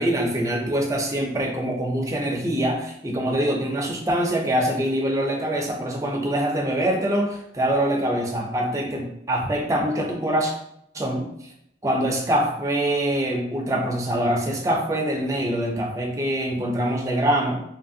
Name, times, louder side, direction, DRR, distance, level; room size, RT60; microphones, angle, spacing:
voice 1, 0.0-10.5 10.9-11.3 11.8-17.6, right 1 dB, 20° right, 0 dB, 0.4 m, -24 dB
2.8 x 2.5 x 2.5 m, 0.75 s
head